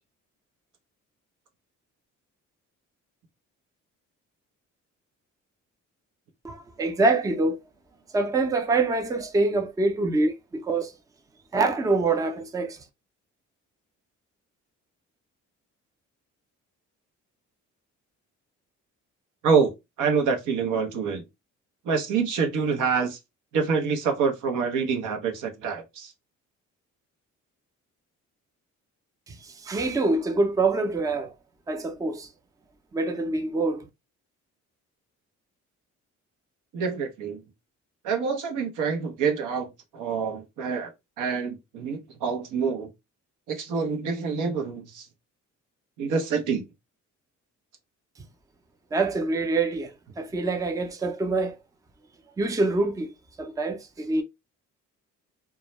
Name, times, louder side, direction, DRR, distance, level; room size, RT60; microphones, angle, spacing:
voice 1, 6.4-7.6 8.1-10.9 11.5-12.8 29.3-31.3 31.7-32.3 32.9-33.9 48.9-51.6 52.4-53.1 53.4-54.2, right 3 dB, 10° right, 0.4 m, -25 dB
voice 2, 20.0-21.2 21.8-23.2 23.5-26.1 36.7-37.4 38.0-40.9 41.2-42.9 43.5-45.1 46.0-46.6, right 5 dB, 90° right, 0.7 m, -26 dB
2.2 x 2.1 x 2.8 m
cardioid pair, 90°, 30 cm